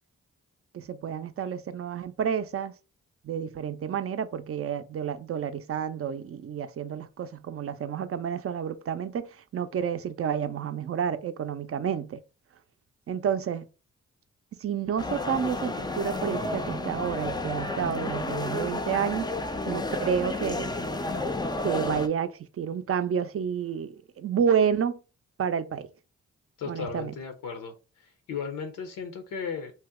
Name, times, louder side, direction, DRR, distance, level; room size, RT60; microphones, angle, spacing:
voice 1, 0.7-2.7 3.2-12.2 13.1-13.7 14.6-19.3 19.7-20.7 21.6-25.0 25.4-25.9 26.7-27.1, right 8 dB, 45° right, 0.5 m, -30 dB
sound 1, 15.0-22.1, left 2 dB, 15° left, 0.4 m, -31 dB
voice 2, 26.6-27.7 28.3-29.7, left 6 dB, 80° left, 0.6 m, -35 dB
2.8 x 2.1 x 3.5 m
supercardioid pair, 45°, 32 cm